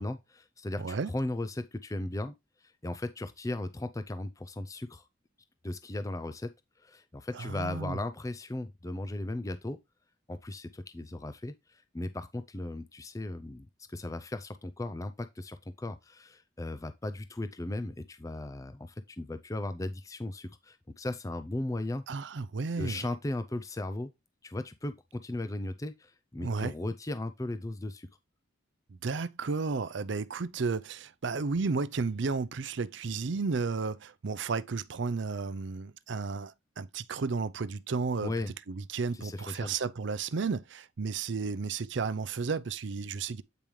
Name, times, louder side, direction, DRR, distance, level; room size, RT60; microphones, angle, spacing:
voice 1, 0.0-5.1 5.6-9.8 10.3-22.3 22.8-24.1 24.4-28.1 38.2-38.5 39.1-39.7, left 2 dB, 15° left, 0.4 m, -37 dB
voice 2, 0.8-1.1 7.3-8.0 22.1-23.1 26.4-26.7 28.9-38.3 38.7-43.4, right 4 dB, 60° right, 0.5 m, -33 dB
8.7 x 5.2 x 3.1 m
head